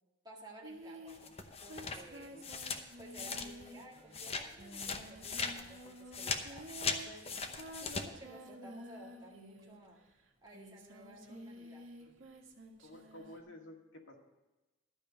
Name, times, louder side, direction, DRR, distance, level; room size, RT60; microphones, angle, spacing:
voice 1, 0.2-2.4 3.0-10.0 10.4-11.9, right 1 dB, 20° right, -3 dB, 2.0 m, -55 dB
Singing, 0.6-10.0 10.5-13.4, right 1 dB, 85° right, 1.6 m, -51 dB
sound 1, 1.1-3.8 4.1-8.0, left 5 dB, 30° left, 0.8 m, -39 dB
voice 2, 2.2-2.5 12.8-14.2, left 1 dB, 75° left, 0 dB, 1.9 m, -52 dB
12.5 x 5.3 x 8.9 m, 1.1 s
head